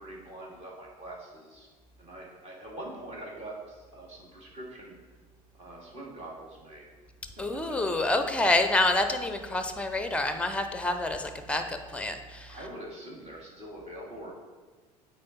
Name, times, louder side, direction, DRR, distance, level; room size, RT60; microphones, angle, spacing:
voice 1, 0.0-1.7 2.0-5.0 5.5-6.9 7.4-7.8 12.5-14.3, right 1 dB, 30° right, -3 dB, 2.3 m, -44 dB
voice 2, 7.4-12.6, left 2 dB, 5° left, 7 dB, 0.7 m, -28 dB
8.6 x 4.0 x 4.2 m, 1.3 s
figure-of-eight pair, 70°, 20 cm